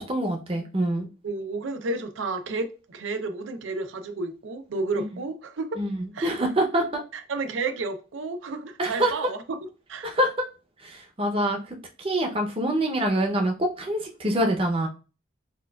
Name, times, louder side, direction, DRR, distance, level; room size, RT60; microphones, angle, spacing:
voice 1, 0.0-1.1 5.8-7.0 8.8-9.1 10.0-10.3 10.8-11.6 12.0-14.9, right 1 dB, 30° right, 0.6 m, -25 dB
voice 2, 1.2-5.7 6.1-6.4 7.1-9.6 9.9-10.1, right 3 dB, 90° right, 0.5 m, -31 dB
4.3 x 2.3 x 2.2 m
head